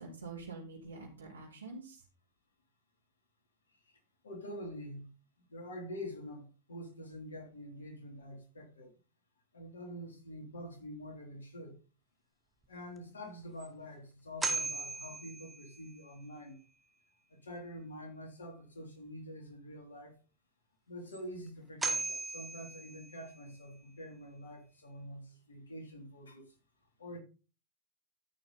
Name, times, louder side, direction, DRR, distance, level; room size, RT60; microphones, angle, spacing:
voice 1, 0.0-2.0, right 3 dB, 75° right, 4.3 m, -46 dB
voice 2, 4.2-5.1 5.4-8.9 9.5-11.8 12.7-16.6 17.3-20.2 20.9-26.5 27.0-27.2, equal, 70° left, 3.3 m, -46 dB
sound 1, 13.0-13.1 13.6-13.7 14.4-16.0 21.1-21.2 21.8-23.5, right 4 dB, 15° right, 1.6 m, -37 dB
14.0 x 6.3 x 4.2 m
figure-of-eight pair, 90°, 0 cm